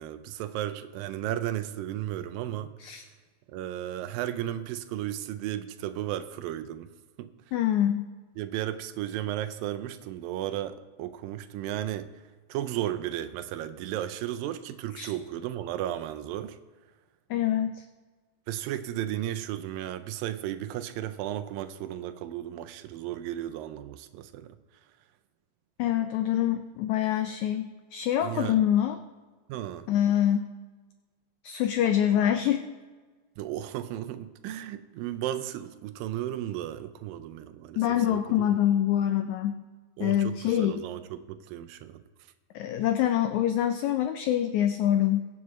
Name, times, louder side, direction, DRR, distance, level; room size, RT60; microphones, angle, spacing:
voice 1, 0.0-2.8 3.5-6.9 7.2-7.3 8.4-12.1 12.5-16.6 18.5-24.6 28.2-28.6 29.5-29.9 33.4-38.5 40.0-42.0, right 12 dB, 85° right, 10 dB, 2.4 m, -34 dB
voice 2, 7.5-8.1 15.0-15.1 17.3-17.8 25.8-29.0 29.9-30.4 31.4-32.6 37.8-39.6 40.0-40.8 42.5-45.3, left 11 dB, 90° left, 8 dB, 1.6 m, -25 dB
22.0 x 7.4 x 3.1 m, 1.4 s
omnidirectional pair, 4.0 m